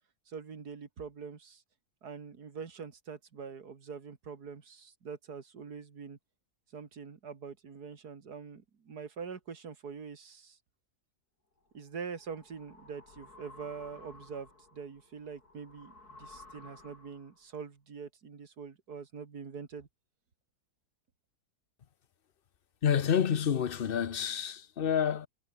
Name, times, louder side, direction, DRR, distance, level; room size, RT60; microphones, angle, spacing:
voice 1, 0.3-1.6 2.0-6.2 6.7-10.6 11.7-19.9, right 6 dB, 85° right, 2.6 m, -44 dB
sound 1, 11.7-17.4, left 2 dB, 80° left, 5.8 m, -55 dB
voice 2, 22.8-25.3, left 8 dB, 45° left, 0.9 m, -28 dB
omnidirectional pair, 1.6 m